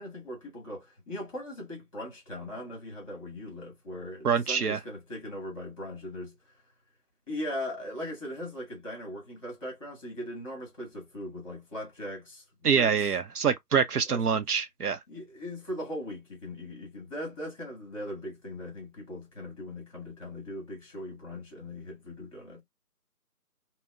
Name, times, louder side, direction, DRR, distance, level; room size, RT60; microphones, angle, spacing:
voice 1, 0.0-6.3 7.3-12.4 12.7-13.1 14.1-14.4 15.1-22.6, left 1 dB, 20° left, 1.4 m, -39 dB
voice 2, 4.2-4.8 12.6-15.0, right 6 dB, 70° right, 0.6 m, -25 dB
5.4 x 2.1 x 2.3 m
figure-of-eight pair, 175°, 47 cm